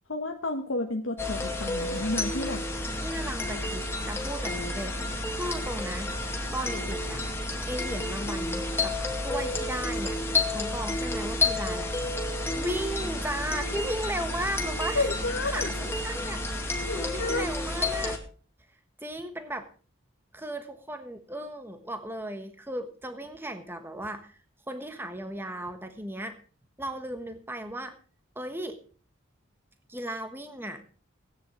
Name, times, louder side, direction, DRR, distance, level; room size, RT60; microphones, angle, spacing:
voice 1, 0.1-2.6 14.9-15.7 16.9-17.5, left 2 dB, 65° left, 3 dB, 1.3 m, -31 dB
sound 1, 1.2-18.2, left 2 dB, 10° left, 2.2 m, -31 dB
voice 2, 3.0-6.1 6.5-7.2 7.7-10.2 10.5-12.0 12.6-15.1 15.5-18.2 19.0-19.7 20.3-24.4 24.7-26.4 26.8-27.9 28.3-28.8 29.9-30.8, right 1 dB, 10° right, 8 dB, 1.3 m, -36 dB
17.0 x 9.5 x 5.1 m, 0.39 s
head